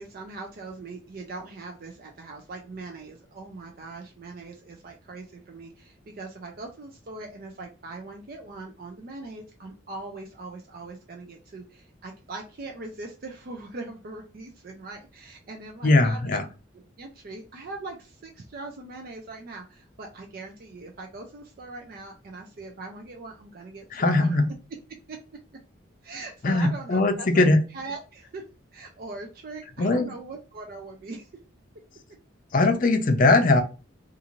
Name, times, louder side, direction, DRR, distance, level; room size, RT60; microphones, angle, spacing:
voice 1, 0.0-16.4 17.0-24.4 25.1-25.2 26.0-27.5 27.7-28.4 28.7-31.3, right 3 dB, 50° right, 2 dB, 0.4 m, -41 dB
voice 2, 15.8-16.4 23.9-24.5 26.4-27.6 29.8-30.1 32.5-33.6, left 2 dB, 45° left, 7 dB, 0.5 m, -20 dB
2.6 x 2.4 x 2.9 m, 0.32 s
head